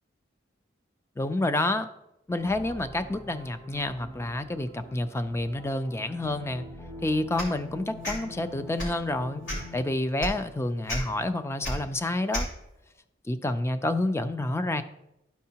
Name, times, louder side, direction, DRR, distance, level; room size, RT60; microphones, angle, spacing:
voice 1, 1.2-1.9 2.3-6.7 7.0-9.4 9.7-12.5 13.2-14.8, left 2 dB, 15° left, 11 dB, 0.4 m, -29 dB
sound 1, 2.4-9.9, left 1 dB, 45° left, 2.2 m, -45 dB
sound 2, 7.4-7.5 8.0-8.2 8.7-9.0 9.4-9.7 10.2-10.3 10.9-11.0 11.6-11.7 12.3-12.5, equal, 70° left, 2.9 m, -31 dB
12.5 x 4.6 x 2.8 m, 0.85 s
head